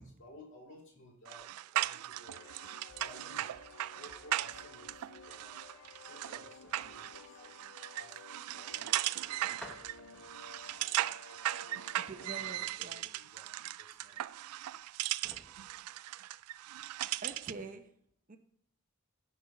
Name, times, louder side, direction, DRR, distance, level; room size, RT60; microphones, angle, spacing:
voice 1, 0.0-3.5 3.9-9.0 9.5-10.2 10.6-11.2 12.5-14.3, left 1 dB, 55° left, -1 dB, 2.3 m, -58 dB
sound 1, 1.2-17.6, right 14 dB, 90° right, 0.3 m, -38 dB
sound 2, 2.3-12.5, left 4 dB, 70° left, 0.6 m, -55 dB
sound 3, 2.6-16.9 17.2-17.4, equal, 5° left, 1.0 m, -60 dB
voice 2, 12.0-13.0 16.7-16.8 17.2-17.9 18.3-18.4, right 3 dB, 35° right, 7 dB, 0.7 m, -46 dB
15.0 x 5.3 x 4.0 m, 0.66 s
head